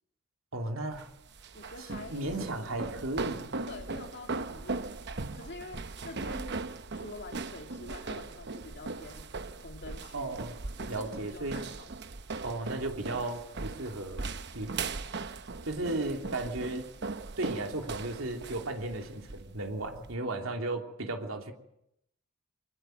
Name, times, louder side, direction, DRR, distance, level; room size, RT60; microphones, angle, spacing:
voice 1, 0.5-1.1 2.1-3.5 10.1-10.5 10.9-11.6 12.4-14.2 14.5-14.7 15.6-16.9 17.4-21.5, right 2 dB, 80° right, 3 dB, 3.1 m, -35 dB
sound 1, 0.9-20.1, right 3 dB, 55° right, 1.0 m, -39 dB
voice 2, 1.5-2.7 3.7-4.9 5.3-6.6 6.9-9.3 9.6-10.3 10.8-11.9, left 2 dB, 60° left, 3 dB, 2.9 m, -46 dB
24.0 x 20.0 x 7.9 m, 0.78 s
head